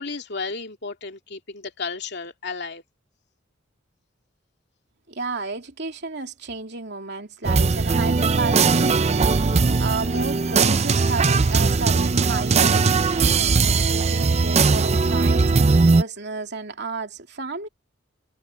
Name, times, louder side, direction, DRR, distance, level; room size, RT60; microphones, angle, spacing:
voice 1, 0.0-2.8, left 4 dB, 60° left, 2.8 m, -33 dB
voice 2, 5.1-17.7, right 3 dB, 60° right, 2.9 m, -32 dB
sound 1, 7.4-16.0, right 4 dB, 35° right, 0.5 m, -19 dB
head